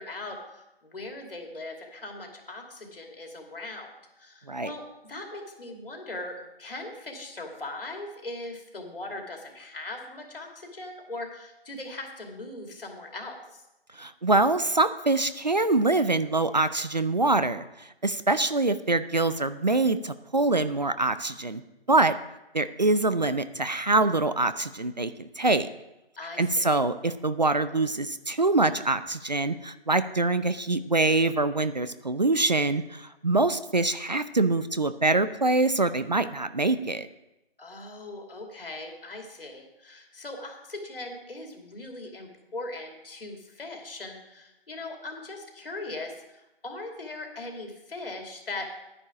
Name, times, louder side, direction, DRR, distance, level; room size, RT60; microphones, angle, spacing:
voice 1, 0.0-3.9 4.2-13.6 26.2-26.7 37.6-48.6, left 2 dB, 65° left, 2 dB, 2.6 m, -40 dB
voice 2, 13.9-21.6 21.9-22.1 22.5-25.7 26.4-37.1, right 2 dB, 45° right, 13 dB, 0.4 m, -24 dB
11.0 x 9.8 x 4.9 m, 0.93 s
hypercardioid pair, 180°, 30 cm